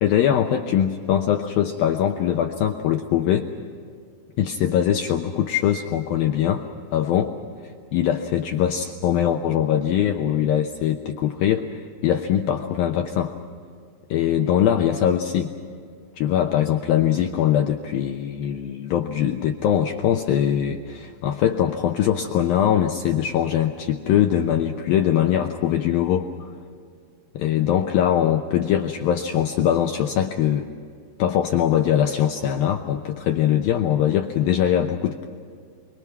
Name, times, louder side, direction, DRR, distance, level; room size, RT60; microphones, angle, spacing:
voice 1, 0.0-3.5 4.4-6.6 6.9-7.4 7.6-13.3 14.1-15.5 16.2-26.5 27.3-30.7 31.2-35.2, left 10 dB, 75° left, 4 dB, 2.2 m, -22 dB
29.0 x 23.0 x 6.0 m, 2.3 s
omnidirectional pair, 5.2 m